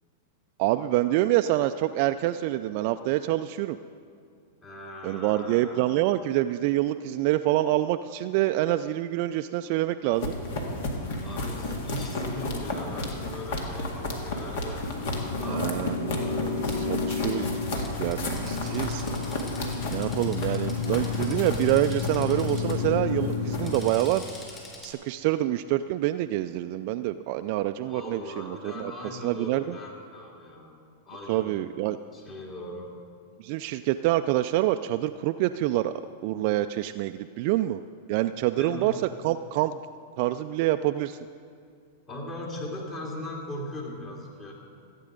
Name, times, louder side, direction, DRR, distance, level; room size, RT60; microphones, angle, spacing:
voice 1, 0.6-3.8 5.0-10.4 15.5-19.0 19.9-24.2 24.8-28.9 29.2-29.8 31.3-32.0 33.4-35.9 36.2-37.8 38.1-38.9 39.2-39.8 40.2-41.2, right 15 dB, 55° right, 9 dB, 0.3 m, -26 dB
voice 2, 4.6-6.2 6.9-7.0 11.2-14.9 15.3-17.0 27.8-30.8 31.0-32.9 38.6-38.9 42.1-44.5, left 1 dB, 30° left, -2 dB, 2.8 m, -40 dB
sound 1, 10.1-23.8, left 4 dB, 65° left, 1.9 m, -30 dB
Drill, 16.7-16.8 17.8-22.8 23.5-24.9, left 2 dB, 15° left, 3.7 m, -45 dB
15.0 x 8.4 x 5.1 m, 2.3 s
hypercardioid pair, 105°, 0 cm